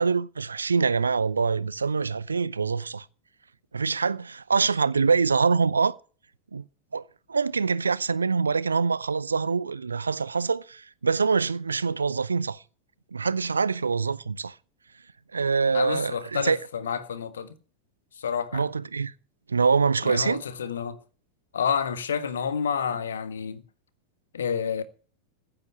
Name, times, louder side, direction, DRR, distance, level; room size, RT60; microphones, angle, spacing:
voice 1, 0.0-3.1 3.7-5.9 6.5-6.6 6.9-7.0 7.3-12.6 13.1-14.5 15.3-16.6 18.5-19.1 19.5-20.4, right 5 dB, 75° right, 0.6 m, -25 dB
voice 2, 15.7-17.5 18.2-18.6 20.0-21.0 21.5-23.6 24.3-24.8, left 7 dB, 65° left, 1.7 m, -29 dB
15.5 x 8.8 x 7.1 m
figure-of-eight pair, 90°, 0 cm